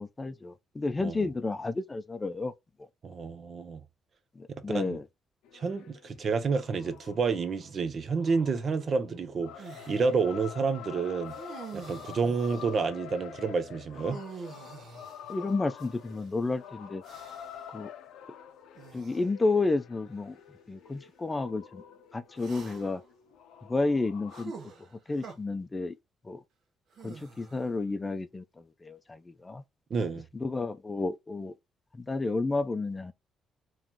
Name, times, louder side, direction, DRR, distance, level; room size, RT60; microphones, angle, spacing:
voice 1, 0.0-2.5 4.4-5.0 15.3-17.0 17.7-17.9 18.9-20.4 20.7-21.8 22.1-23.0 23.7-24.5 25.1-26.0 26.3-26.4 27.0-28.4 28.8-29.6 30.3-31.5 32.0-33.1, left 3 dB, 25° left, 0.5 m, -31 dB
voice 2, 3.0-3.8 4.7-5.0 5.5-11.4 11.7-14.2 29.9-30.2, right 4 dB, 50° right, 0.6 m, -29 dB
sound 1, 5.4-24.4, left 9 dB, 90° left, 0.5 m, -48 dB
sound 2, 9.6-10.1 11.3-12.8 13.9-16.3 17.0-17.7 18.8-19.3 20.1-20.2 22.4-23.1 24.3-25.4 26.9-27.8, right 5 dB, 70° right, 1.1 m, -46 dB
3.1 x 2.8 x 3.7 m
cardioid pair, 90°, 0 cm